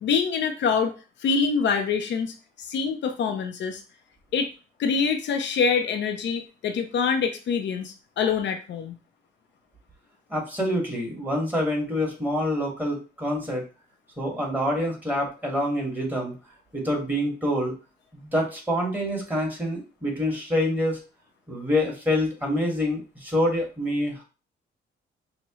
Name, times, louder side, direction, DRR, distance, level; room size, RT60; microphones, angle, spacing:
voice 1, 0.0-0.9 1.2-3.8 4.3-4.5 4.8-9.0, left 5 dB, 65° left, 5 dB, 0.6 m, -25 dB
voice 2, 10.3-13.6 14.2-16.3 16.7-17.7 18.1-21.0 21.5-24.2, left 1 dB, 10° right, -1 dB, 1.8 m, -26 dB
6.1 x 2.1 x 3.1 m, 0.34 s
cardioid pair, 90°, 20 cm